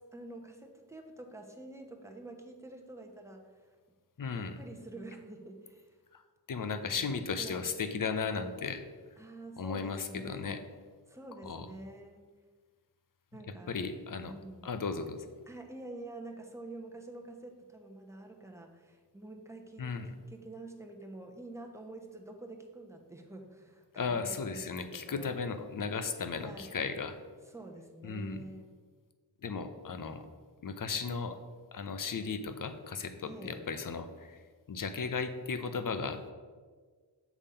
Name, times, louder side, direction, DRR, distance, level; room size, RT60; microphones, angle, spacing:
voice 1, 0.1-3.7 4.3-6.0 6.5-7.7 9.2-10.6 11.1-12.3 13.3-13.8 14.2-14.7 15.5-19.9 20.3-25.3 26.3-26.7 27.4-28.8 33.3-33.6, right 2 dB, 5° right, 2 dB, 1.0 m, -47 dB
voice 2, 4.2-4.6 6.1-6.2 6.5-8.8 9.6-10.6 11.4-11.7 13.7-14.3 14.6-15.2 19.8-20.1 24.0-27.2 28.0-28.4 29.4-30.3 30.6-31.4 31.7-34.4 34.7-36.3, left 5 dB, 50° left, 9 dB, 0.7 m, -35 dB
7.2 x 3.5 x 5.6 m, 1.5 s
cardioid pair, 45°, 44 cm